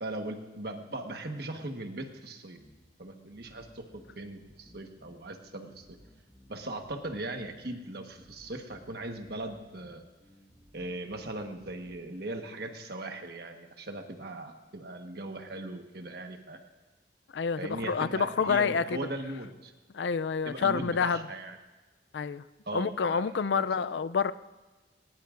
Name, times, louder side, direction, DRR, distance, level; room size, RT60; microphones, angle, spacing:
voice 1, 0.0-2.6 3.0-6.0 6.5-10.0 10.7-16.6 17.6-19.7 20.4-21.6 22.6-23.6, right 2 dB, 60° right, 4 dB, 1.3 m, -39 dB
sound 1, 2.6-12.0, equal, 15° left, 3.6 m, -59 dB
voice 2, 17.3-19.0 19.9-21.3 22.1-22.4 22.7-24.3, left 6 dB, 70° left, 15 dB, 0.4 m, -28 dB
20.5 x 20.0 x 2.5 m, 1.2 s
head